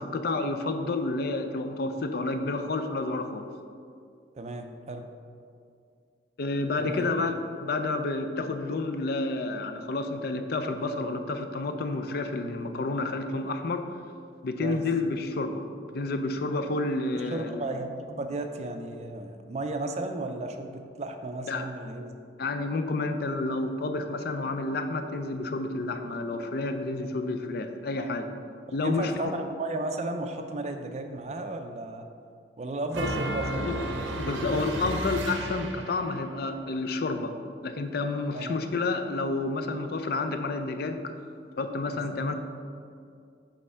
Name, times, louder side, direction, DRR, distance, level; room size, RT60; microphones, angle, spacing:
voice 1, 0.0-3.5 6.4-13.8 14.4-15.6 15.9-17.7 21.5-21.7 22.4-28.3 28.7-29.3 33.0-33.1 33.5-33.8 34.2-37.3 37.6-41.0 41.6-42.3, left 3 dB, 55° left, 7 dB, 0.4 m, -30 dB
voice 2, 4.4-5.0 6.8-7.1 14.6-14.8 17.3-22.1 28.0-28.1 28.8-32.1 32.6-33.7 38.3-38.5 41.9-42.2, right 2 dB, 35° right, 6 dB, 0.4 m, -34 dB
sound 1, 32.9-36.1, right 1 dB, 85° right, 0.7 m, -33 dB
5.4 x 3.6 x 5.5 m, 2.4 s
head